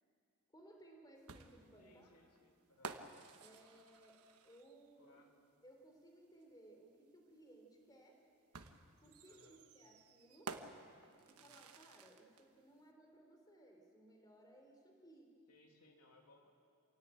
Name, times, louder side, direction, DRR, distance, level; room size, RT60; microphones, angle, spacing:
voice 1, 0.5-2.1 3.4-5.2 5.6-8.2 9.0-10.6 11.2-15.3, right 1 dB, 15° left, 2 dB, 3.6 m, -62 dB
sound 1, 1.3-4.9 6.4-6.5 8.5-12.4, right 4 dB, 80° right, 1.4 m, -53 dB
voice 2, 1.8-3.0 5.0-5.4 9.2-9.6 11.3-11.5 15.5-16.5, left 2 dB, 85° left, 1 dB, 3.0 m, -67 dB
27.5 x 17.0 x 9.1 m, 2.3 s
head